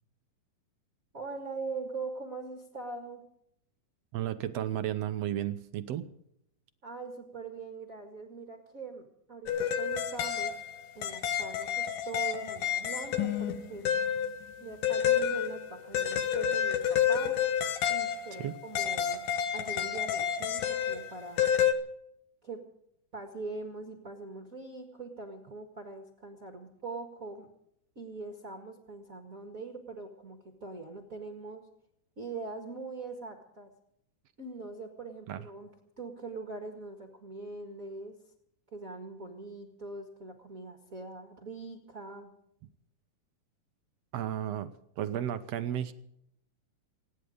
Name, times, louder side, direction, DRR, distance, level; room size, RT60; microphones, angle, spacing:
voice 1, 1.1-3.2 6.8-10.6 11.0-14.0 14.6-17.4 17.9-19.2 19.5-21.5 22.4-22.6 23.1-27.5 28.0-31.6 32.2-33.7 34.4-38.2 38.7-42.3, right 3 dB, 30° right, 4 dB, 1.8 m, -42 dB
voice 2, 4.1-6.1 18.4-18.5 35.3-35.5 44.1-45.9, right 11 dB, 70° right, 10 dB, 1.7 m, -33 dB
sound 1, 9.5-21.7, left 8 dB, 80° left, 2.9 m, -30 dB
27.5 x 10.0 x 5.1 m, 0.75 s
omnidirectional pair, 3.6 m